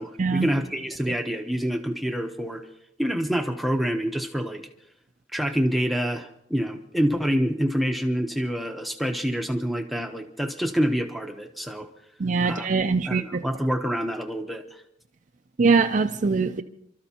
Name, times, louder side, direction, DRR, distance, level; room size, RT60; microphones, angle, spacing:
voice 1, 0.0-2.7 3.0-4.7 5.3-11.9 12.4-12.7 13.1-14.8, equal, ahead, 0.8 m, -27 dB
voice 2, 12.2-13.4 15.6-16.6, right 4 dB, 45° right, 0.5 m, -22 dB
28.5 x 13.0 x 2.8 m
head